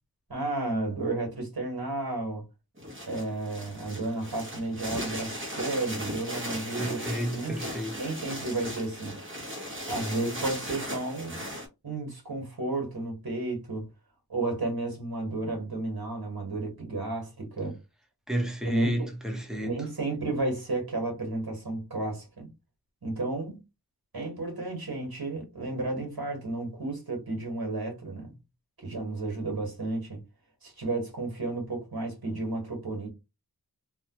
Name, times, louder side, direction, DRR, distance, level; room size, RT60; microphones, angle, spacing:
voice 1, 0.3-2.4 3.0-7.1 7.3-7.5 8.0-9.2 9.9-11.4 11.8-13.8 14.3-17.8 18.6-19.1 19.6-22.5 23.0-23.6 24.1-28.3 28.8-30.2 30.6-33.1, right 2 dB, 65° right, 1.5 m, -32 dB
sound 1, 2.8-11.7, equal, 30° right, 1.1 m, -37 dB
voice 2, 6.8-8.0 18.3-19.7, equal, ahead, 1.0 m, -31 dB
3.2 x 2.3 x 2.9 m
wide cardioid pair, 55°, 39 cm